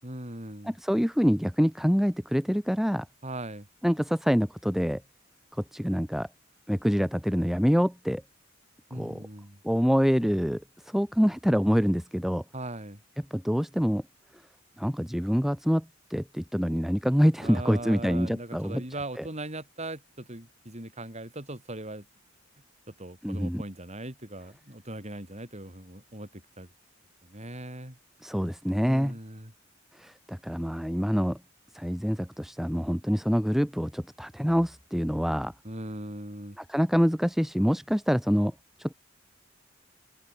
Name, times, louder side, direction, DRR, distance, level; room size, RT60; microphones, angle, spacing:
voice 1, 0.0-0.7 3.2-3.7 8.9-9.6 12.5-13.0 17.4-22.1 23.0-26.7 27.2-28.0 28.8-29.5 35.6-36.6, right 1 dB, 35° right, 7.9 m, -39 dB
voice 2, 0.6-3.1 3.8-5.0 5.7-6.3 6.7-8.2 8.9-9.2 9.6-12.4 13.3-14.0 14.8-18.8 19.2-19.3 23.2-23.6 28.2-29.2 29.9-31.4 31.7-35.5 36.6-38.5 38.8-38.9, equal, ahead, 2.5 m, -26 dB
open air
head